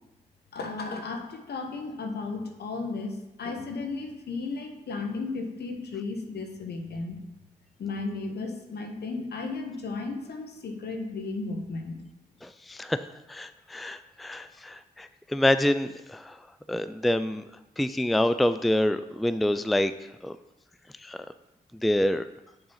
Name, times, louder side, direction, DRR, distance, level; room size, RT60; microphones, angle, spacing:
voice 1, 0.5-7.2 7.8-12.0, left 3 dB, 70° left, 4 dB, 1.1 m, -34 dB
voice 2, 12.4-13.0 13.3-16.4 16.7-17.4 17.8-19.9 20.2-20.4 21.0-21.2 21.8-22.2, left 1 dB, ahead, 12 dB, 0.4 m, -26 dB
6.7 x 3.9 x 5.7 m, 0.95 s
supercardioid pair, 40°, 17 cm